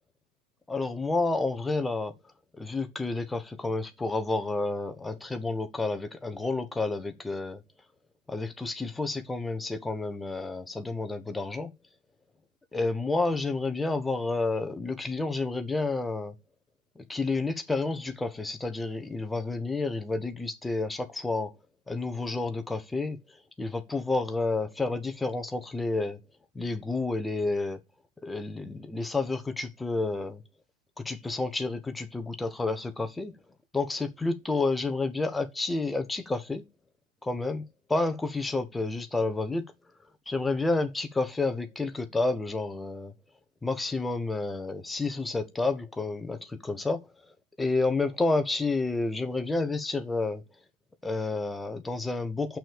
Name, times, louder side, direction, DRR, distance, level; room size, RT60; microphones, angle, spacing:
voice 1, 0.7-2.1 2.5-7.6 8.3-11.7 12.7-16.3 16.9-21.5 21.9-23.2 23.6-26.2 26.5-27.8 28.2-30.4 31.0-33.3 33.7-36.6 37.2-39.6 40.3-43.1 43.6-47.1 47.6-50.4 51.0-52.6, left 3 dB, 10° left, 1.3 m, -30 dB
6.5 x 6.1 x 7.0 m
figure-of-eight pair, 90°, 0 cm